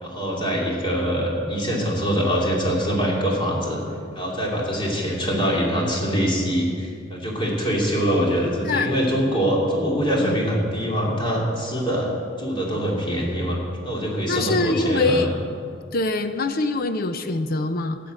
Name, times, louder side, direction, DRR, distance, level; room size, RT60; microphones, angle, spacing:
voice 1, 0.0-3.8 4.1-12.1 12.4-13.6 13.8-15.3, equal, 25° left, -3 dB, 2.7 m, -23 dB
voice 2, 14.3-15.3 15.9-18.0, left 3 dB, 50° left, 9 dB, 0.6 m, -24 dB
12.5 x 8.4 x 7.7 m, 2.3 s
head